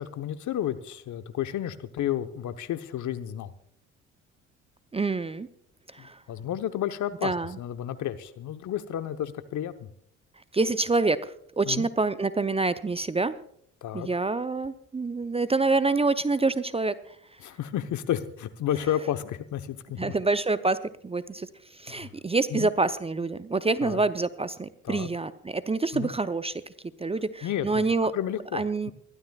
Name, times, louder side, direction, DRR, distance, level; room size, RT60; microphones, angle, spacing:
voice 1, 0.0-3.5 6.0-9.9 11.7-11.9 13.8-14.1 17.4-20.1 21.9-22.1 22.5-22.7 23.8-24.0 24.8-25.1 25.9-26.1 27.4-27.8 28.1-28.9, left 11 dB, 50° left, 11 dB, 1.0 m, -32 dB
voice 2, 4.9-5.5 5.9-6.2 7.2-7.6 10.5-13.3 13.9-17.2 20.0-26.6 27.0-28.1 28.5-28.9, right 3 dB, 15° right, 14 dB, 0.6 m, -27 dB
27.5 x 12.5 x 2.3 m, 0.69 s
hypercardioid pair, 55°, 38 cm